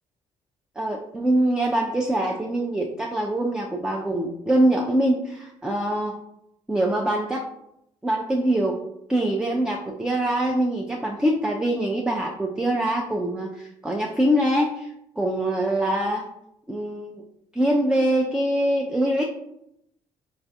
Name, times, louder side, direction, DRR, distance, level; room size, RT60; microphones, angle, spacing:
voice 1, 0.8-6.2 6.7-7.4 8.0-8.8 9.1-14.9 15.2-16.3 16.7-17.2 17.5-19.2, right 1 dB, 5° right, 0 dB, 0.4 m, -24 dB
4.4 x 2.4 x 2.4 m, 0.80 s
figure-of-eight pair, 45°, 17 cm